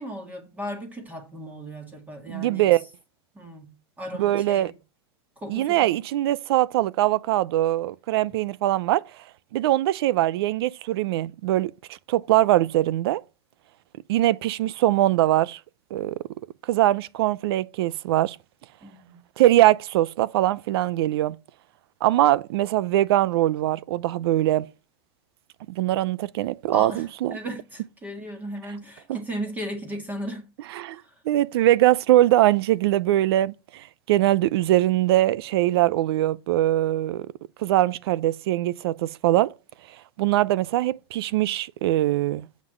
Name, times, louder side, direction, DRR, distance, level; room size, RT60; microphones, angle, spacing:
voice 1, 0.0-2.8 3.3-3.7 4.0-4.7 5.4-6.0 18.8-19.2 26.7-30.5 30.9-31.1, equal, 10° right, 1.9 m, -36 dB
voice 2, 2.3-2.8 4.2-4.7 5.5-9.0 9.5-11.7 12.1-13.2 14.1-15.6 15.9-16.2 16.7-18.4 19.4-21.4 22.0-24.7 25.7-27.4 30.8-31.0 31.3-37.3 37.6-39.5 40.2-42.5, right 14 dB, 70° right, 0.6 m, -22 dB
7.4 x 5.9 x 7.6 m
supercardioid pair, 145°, 14 cm